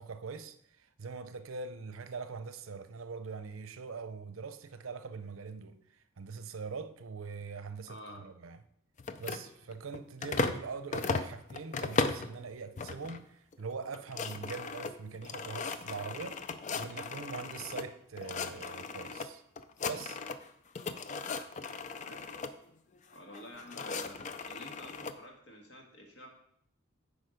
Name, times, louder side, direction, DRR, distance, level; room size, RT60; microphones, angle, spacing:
voice 1, 0.0-8.6 9.2-19.4 19.8-20.2, right 5 dB, 90° right, 0.6 m, -43 dB
voice 2, 7.9-8.3 22.0-22.3 23.1-26.3, left 1 dB, 60° left, 1.8 m, -50 dB
sound 1, 9.0-10.6 10.9-12.3 12.8-13.2 13.5-13.6 13.9-17.9 18.2-19.3 19.6-20.5 20.7-22.5 23.3-25.1, left 4 dB, 35° left, 0.4 m, -36 dB
8.1 x 5.0 x 5.1 m
head